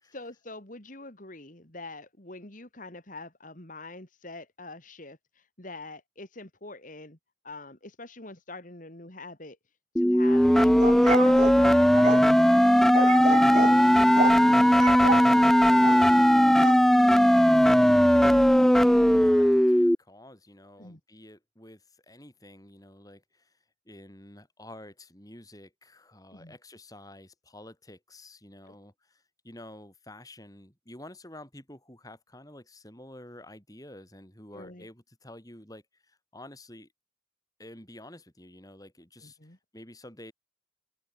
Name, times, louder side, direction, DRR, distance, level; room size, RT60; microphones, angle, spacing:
voice 1, 0.1-7.2 7.4-9.6 10.0-13.9 20.8-21.0 26.3-26.6 28.7-28.8 34.5-34.9 39.2-39.6, left 2 dB, 40° left, 2.8 m, -44 dB
sound 1, 10.0-20.0, equal, ahead, 0.4 m, -19 dB
sound 2, 10.6-12.2 12.9-13.8 14.2-14.4 14.8-15.3 15.8-16.1 16.6-16.8, right 3 dB, 40° right, 1.5 m, -29 dB
voice 2, 15.6-23.5 23.8-36.9 37.6-40.3, left 1 dB, 20° left, 6.5 m, -49 dB
head